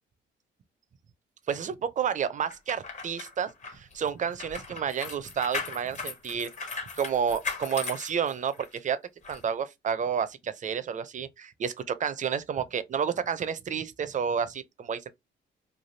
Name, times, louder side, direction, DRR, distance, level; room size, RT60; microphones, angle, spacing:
voice 1, 1.5-6.5 6.9-8.5 8.8-9.0 9.3-15.1, right 7 dB, 40° right, 0.5 m, -30 dB
sound 1, 2.5-8.8 9.2-9.4, left 4 dB, 35° left, 0.9 m, -38 dB
3.2 x 2.3 x 2.6 m
cardioid pair, 90°, 20 cm